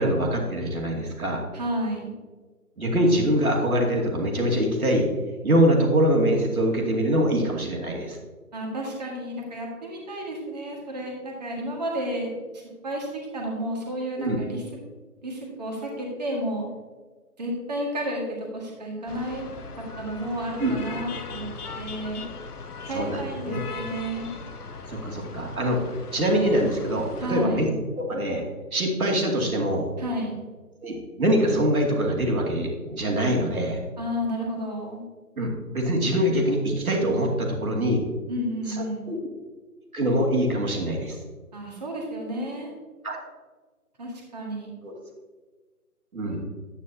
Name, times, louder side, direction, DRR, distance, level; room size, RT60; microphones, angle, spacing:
voice 1, 0.0-1.4 2.8-5.1 5.4-8.2 14.2-14.4 20.6-20.8 22.9-23.6 24.9-27.7 28.1-28.4 28.7-29.9 30.8-33.8 35.4-38.0 38.7-39.2 39.9-41.2 43.0-43.2 44.8-44.9 46.1-46.4, equal, 65° right, 0 dB, 2.5 m, -24 dB
voice 2, 1.5-2.1 8.5-13.1 13.3-14.6 15.2-16.7 17.4-19.5 19.8-22.2 22.8-24.3 27.2-27.7 30.0-30.4 34.0-35.0 38.3-39.2 41.5-42.7 44.0-44.7 46.3-46.4, equal, 25° right, -1 dB, 1.8 m, -31 dB
sound 1, 19.1-27.3, left 4 dB, 75° left, 0.9 m, -39 dB
10.0 x 9.2 x 2.8 m, 1.4 s
figure-of-eight pair, 160°, 46 cm